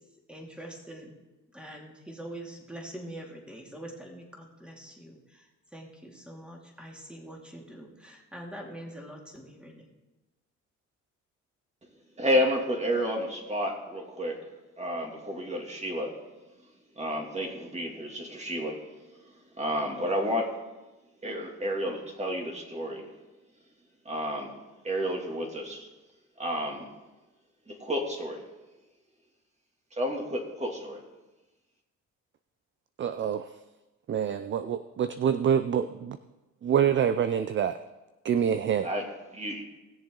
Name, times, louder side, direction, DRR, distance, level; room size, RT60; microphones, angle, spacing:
voice 1, 0.3-1.1 1.5-5.5 5.7-9.9, right 1 dB, 5° right, 0 dB, 2.6 m, -44 dB
voice 2, 12.2-14.4 14.8-16.2 17.0-18.8 19.6-20.5 21.2-23.1 24.0-24.5 24.8-25.9 26.4-26.9 27.7-28.4 29.9-31.0 38.8-39.6, equal, 20° right, 0 dB, 2.5 m, -31 dB
voice 3, 33.0-33.5 34.1-36.2 36.6-37.8 38.2-38.9, right 8 dB, 40° right, 12 dB, 0.5 m, -26 dB
19.0 x 7.2 x 3.8 m, 1.1 s
cardioid pair, 90°, 30 cm